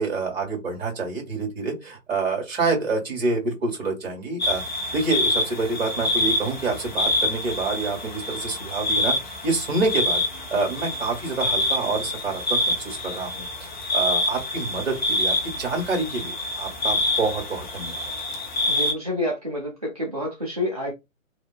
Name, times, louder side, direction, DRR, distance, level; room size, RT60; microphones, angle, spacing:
voice 1, 0.0-4.6 4.9-9.1 9.4-10.2 10.5-13.4 13.9-18.1, right 3 dB, 45° right, 1.4 m, -27 dB
sound 1, 4.4-18.9, left 2 dB, 35° left, 0.5 m, -26 dB
voice 2, 18.7-20.9, left 1 dB, 30° right, 0.4 m, -28 dB
2.7 x 2.0 x 2.3 m
figure-of-eight pair, 135°, 40 cm